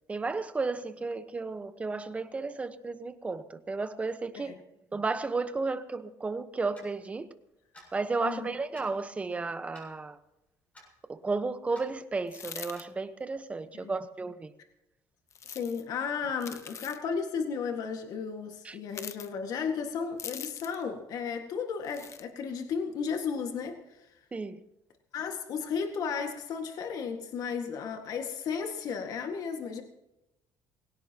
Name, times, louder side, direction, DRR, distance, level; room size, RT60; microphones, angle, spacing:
voice 1, 0.1-4.5 4.9-7.3 7.9-10.2 11.1-14.5 18.6-18.8 24.3-24.6, right 3 dB, 20° right, 1.2 m, -33 dB
Clock, 6.7-6.9 7.7-7.9 8.7-8.9 9.7-9.9 10.7-10.9 11.7-11.9 12.7-12.9, left 1 dB, 20° left, 7.4 m, -52 dB
voice 2, 8.2-8.5 13.7-13.9 15.5-23.8 25.1-29.8, left 6 dB, 55° left, 1.9 m, -34 dB
sound 1, 12.3-12.8 15.3-15.8 16.4-17.0 18.9-19.3 20.2-20.8 21.8-22.2, left 8 dB, 40° left, 1.0 m, -42 dB
22.0 x 18.0 x 3.0 m
cardioid pair, 140°, 7 cm